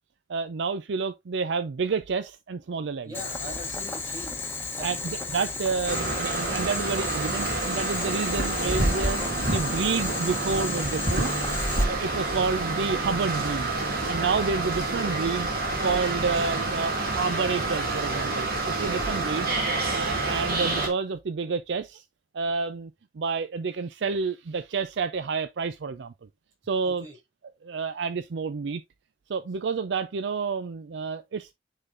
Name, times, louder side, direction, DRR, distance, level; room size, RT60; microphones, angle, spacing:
voice 1, 0.3-3.1 4.8-9.2 9.5-11.3 11.9-13.7 14.1-15.5 15.8-19.5 19.9-22.0 22.3-26.1 26.7-27.1 27.6-28.8 29.3-31.5, right 5 dB, 85° right, 0.5 m, -29 dB
voice 2, 3.0-4.5 4.8-5.2 18.9-19.4 26.8-27.2, equal, 25° right, 5.2 m, -42 dB
Boiling, 3.1-11.8, left 3 dB, 15° left, 1.0 m, -34 dB
sound 1, 5.9-20.9, right 2 dB, 55° right, 2.4 m, -28 dB
9.8 x 3.8 x 2.6 m
head